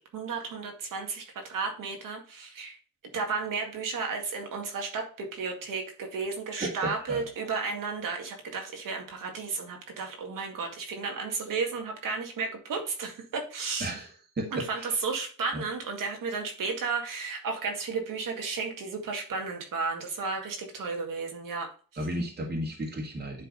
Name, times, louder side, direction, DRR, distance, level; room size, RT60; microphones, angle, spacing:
voice 1, 0.1-2.8 3.1-14.0 14.5-21.7, right 4 dB, 75° right, 3 dB, 2.1 m, -33 dB
voice 2, 6.6-7.2 13.8-14.1 14.4-14.9 15.5-15.6 22.0-23.5, right 1 dB, 30° right, 0 dB, 2.0 m, -33 dB
9.9 x 3.6 x 4.0 m, 0.38 s
cardioid pair, 95°, 34 cm